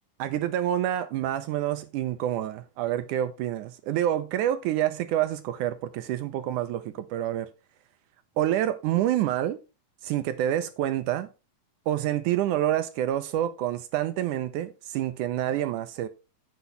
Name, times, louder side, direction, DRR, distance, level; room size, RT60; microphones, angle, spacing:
voice 1, 0.2-7.5 8.4-9.6 10.0-11.3 11.9-16.1, right 12 dB, 75° right, 2.0 m, -27 dB
9.7 x 8.3 x 3.2 m
omnidirectional pair, 4.0 m